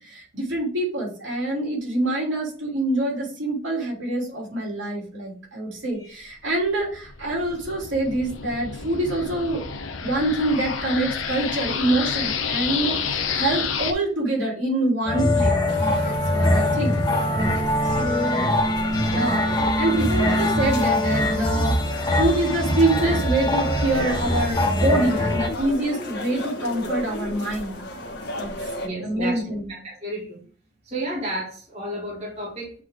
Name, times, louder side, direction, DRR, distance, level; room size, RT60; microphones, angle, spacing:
voice 1, 0.0-9.6 10.0-15.5 16.0-17.0 18.0-18.5 19.0-27.7 28.3-28.5 29.0-29.7, right 1 dB, 65° right, -2 dB, 3.2 m, -25 dB
sound 1, 6.6-13.9, left 6 dB, 80° left, 0.8 m, -29 dB
sound 2, 15.1-25.5, left 1 dB, 20° left, 1.4 m, -22 dB
sound 3, 15.7-28.9, left 1 dB, 55° left, 1.4 m, -35 dB
voice 2, 17.9-18.3 19.9-20.1 28.8-29.4 29.7-30.4 30.8-32.7, right 1 dB, 30° right, -4 dB, 1.9 m, -32 dB
8.2 x 3.6 x 3.5 m, 0.43 s
head